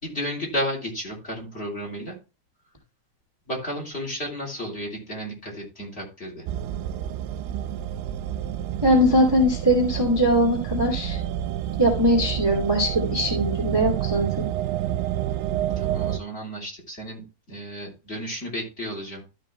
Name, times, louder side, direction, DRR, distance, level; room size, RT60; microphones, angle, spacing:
voice 1, 0.0-2.2 3.5-6.5 15.8-19.2, equal, 15° left, 0 dB, 2.7 m, -33 dB
sound 1, 6.5-16.2, right 11 dB, 80° right, 2.5 m, -29 dB
voice 2, 8.8-11.2 11.8-14.4, equal, 15° right, 0 dB, 0.8 m, -21 dB
13.0 x 5.3 x 3.4 m, 0.30 s
omnidirectional pair, 4.9 m